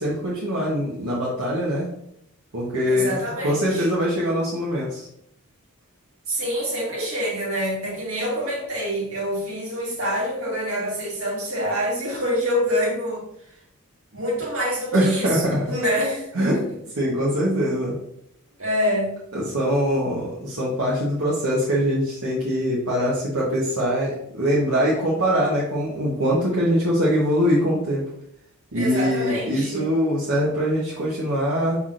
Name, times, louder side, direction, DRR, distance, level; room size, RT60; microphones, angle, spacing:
voice 1, 0.0-1.9 2.5-3.2 3.4-5.1 14.9-15.6 16.3-16.6 17.0-18.0 19.3-28.0 28.7-31.8, equal, 80° right, -7 dB, 1.1 m, -23 dB
voice 2, 2.9-3.9 6.3-13.2 14.1-16.8 18.6-19.1 28.7-29.9, equal, 65° right, -4 dB, 1.9 m, -26 dB
5.8 x 3.5 x 2.5 m, 0.74 s
head